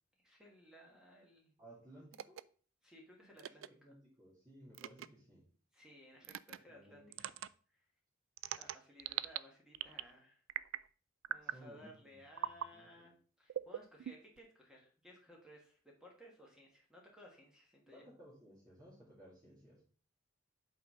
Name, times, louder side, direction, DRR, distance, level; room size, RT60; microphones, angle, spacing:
voice 1, 0.2-1.5 2.8-3.6 5.7-7.3 7.7-7.8 8.5-10.4 11.3-13.1 13.4-18.1, equal, 5° right, -2 dB, 1.3 m, -59 dB
voice 2, 1.6-2.4 3.6-5.5 6.7-7.2 11.4-13.2 17.9-19.8, right 1 dB, 20° right, -9 dB, 2.2 m, -59 dB
sound 1, 2.1-2.4 3.4-3.7 4.7-5.1 6.2-6.6 7.1-7.5 8.4-9.4 9.7-10.1 10.5-10.9 11.2-11.6 12.4-12.7 13.5-14.4, right 11 dB, 70° right, 0.3 m, -41 dB
5.6 x 4.1 x 5.4 m, 0.42 s
head